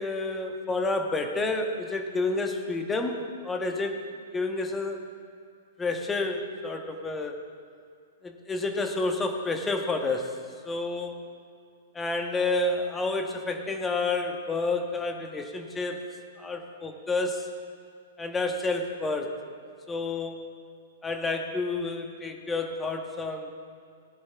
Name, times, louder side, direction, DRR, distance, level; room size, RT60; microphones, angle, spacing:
voice 1, 0.0-4.0 4.3-5.0 5.8-7.3 8.2-10.3 10.6-11.1 11.9-16.0 16.4-17.5 18.2-19.3 19.9-20.5 21.0-23.5, left 3 dB, 15° left, 4 dB, 1.4 m, -29 dB
18.0 x 10.5 x 3.6 m, 2.3 s
hypercardioid pair, 115°, 0 cm